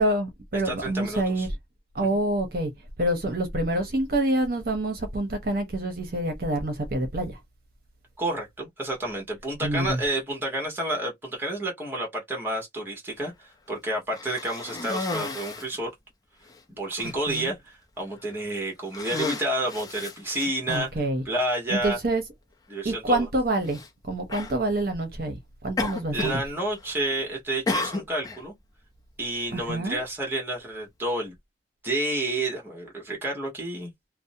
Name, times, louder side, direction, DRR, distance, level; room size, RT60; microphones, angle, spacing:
voice 1, 0.0-1.5 1.9-2.7 3.0-7.4 9.6-10.0 17.0-17.5 20.7-21.2 21.7-22.2 22.8-23.8 24.1-26.4 29.5-30.0, right 1 dB, 50° right, 0.7 m, -27 dB
voice 2, 0.5-1.5 8.2-13.3 13.7-15.9 16.7-20.9 21.2-22.0 22.7-23.3 26.1-28.5 29.2-31.3 31.8-33.9, right 1 dB, 10° right, 1.0 m, -30 dB
Cough, 14.1-15.8 16.5-16.6 17.0-17.5 18.2-18.5 18.8-20.8 21.7-21.8 23.7-23.9 24.3-24.6 25.8-26.5 26.7-27.1 27.7-28.4, left 3 dB, 20° left, 0.5 m, -33 dB
2.6 x 2.0 x 2.6 m
head